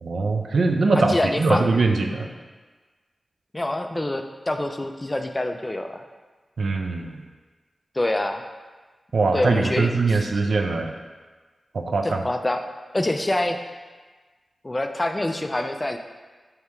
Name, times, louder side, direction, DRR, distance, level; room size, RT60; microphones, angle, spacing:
voice 1, 0.0-2.3 6.6-7.2 9.1-10.9 11.7-12.2, right 3 dB, 80° right, 4 dB, 0.4 m, -22 dB
voice 2, 1.0-1.6 3.5-6.0 8.0-8.4 9.3-10.3 12.0-12.6 12.9-13.6 14.6-16.0, left 1 dB, 25° left, 5 dB, 0.3 m, -26 dB
3.4 x 2.8 x 4.3 m, 1.3 s
cardioid pair, 55°, 0 cm